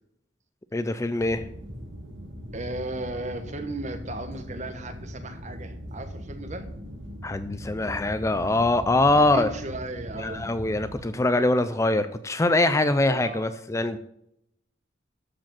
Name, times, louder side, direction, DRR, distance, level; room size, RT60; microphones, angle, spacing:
voice 1, 0.7-1.4 7.2-9.5 10.2-14.0, left 2 dB, 15° left, 11 dB, 0.4 m, -23 dB
sound 1, 1.2-10.9, equal, 90° right, 4.1 m, -39 dB
voice 2, 2.5-6.7 9.2-10.5 13.1-13.4, right 2 dB, 40° right, 7 dB, 1.4 m, -36 dB
13.0 x 5.1 x 7.4 m, 0.78 s
head